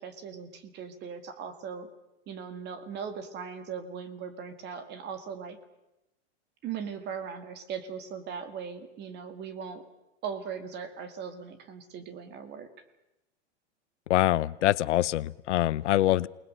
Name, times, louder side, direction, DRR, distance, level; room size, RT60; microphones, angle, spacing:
voice 1, 0.0-1.9 2.3-5.6 6.6-9.8 10.2-12.7, right 6 dB, 30° right, 10 dB, 2.2 m, -39 dB
voice 2, 14.1-16.3, left 14 dB, 80° left, 20 dB, 0.8 m, -24 dB
28.5 x 20.0 x 6.5 m, 0.93 s
supercardioid pair, 145°, 35 cm